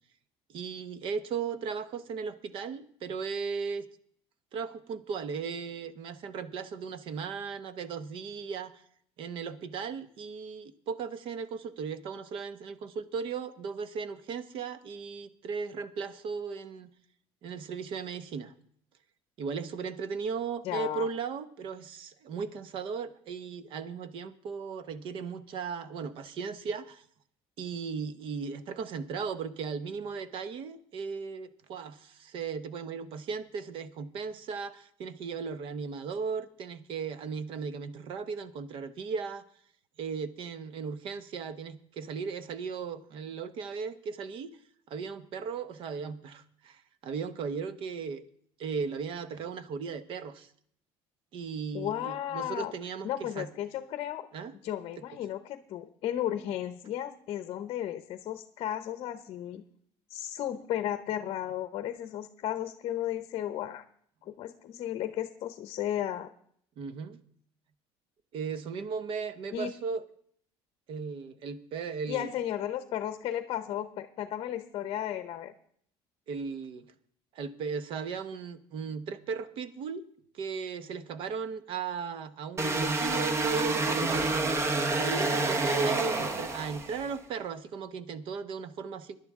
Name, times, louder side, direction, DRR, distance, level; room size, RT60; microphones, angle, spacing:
voice 1, 0.5-3.9 4.5-8.8 9.2-16.9 17.4-18.5 19.4-27.0 27.6-39.4 40.0-44.5 44.9-48.2 48.6-50.5 51.3-53.5 54.3-54.5 66.8-67.2 68.3-70.1 70.9-72.3 76.3-76.9 77.3-80.0 80.3-84.3 84.9-89.2, right 5 dB, 50° right, 13 dB, 0.9 m, -36 dB
voice 2, 20.6-21.1 51.7-52.7 53.0-54.3 54.6-59.6 60.1-63.8 64.3-66.3 69.5-69.7 72.1-75.5, left 11 dB, 50° left, 10 dB, 0.7 m, -34 dB
sound 1, 82.6-87.1, right 2 dB, 25° right, 0.8 m, -28 dB
17.0 x 11.0 x 3.6 m, 0.63 s
cardioid pair, 150°, 11 cm